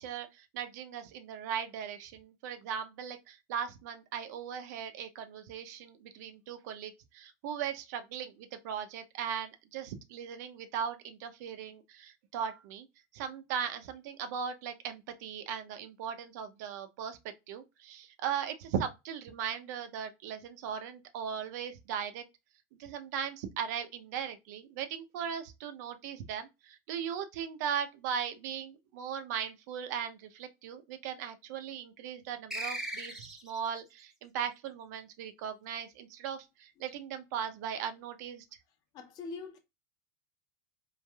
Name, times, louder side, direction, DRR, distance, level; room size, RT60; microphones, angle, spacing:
voice 1, 0.0-12.9 13.1-17.2 17.5-22.2 22.8-38.4, right 8 dB, 70° right, 0.6 m, -38 dB
sound 1, 32.5-33.7, right 1 dB, 5° right, 0.7 m, -38 dB
voice 2, 38.9-39.6, left 4 dB, 45° left, 0.8 m, -42 dB
3.3 x 2.5 x 2.2 m
supercardioid pair, 115°, 9 cm